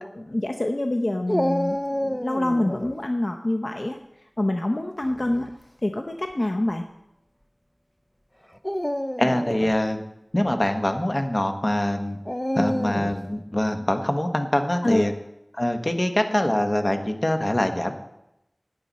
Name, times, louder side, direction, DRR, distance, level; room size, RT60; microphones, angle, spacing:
voice 1, 0.0-4.0 4.4-5.5 5.8-6.8 14.8-15.0, left 1 dB, 60° left, 4 dB, 0.8 m, -26 dB
Dog, 1.3-2.9 5.0-5.5 6.3-6.4 8.5-9.8 12.2-13.2, equal, 15° left, 0.6 m, -28 dB
voice 2, 9.2-10.0 10.3-12.2 12.5-15.1 15.5-18.0, left 1 dB, 40° left, 5 dB, 1.3 m, -24 dB
15.5 x 9.7 x 4.2 m, 0.87 s
wide cardioid pair, 40°, 0 cm